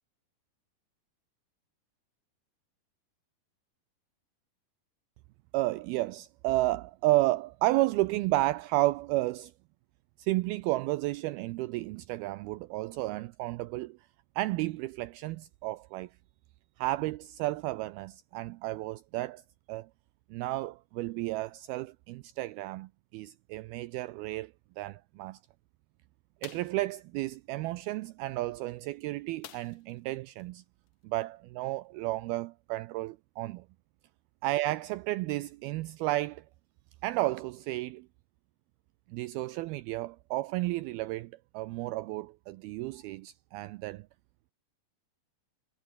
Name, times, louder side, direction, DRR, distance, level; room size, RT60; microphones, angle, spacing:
voice 1, 5.5-9.5 10.2-14.0 14.4-16.1 16.8-19.4 19.7-19.9 20.3-25.4 26.4-30.6 31.0-33.7 34.4-36.5 37.0-38.1 39.1-44.1, right 18 dB, 85° right, 2.3 m, -32 dB
sound 1, 26.4-26.8 29.4-30.0 30.4-30.5 30.9-31.0, left 11 dB, 60° left, 2.2 m, -48 dB
omnidirectional pair, 4.9 m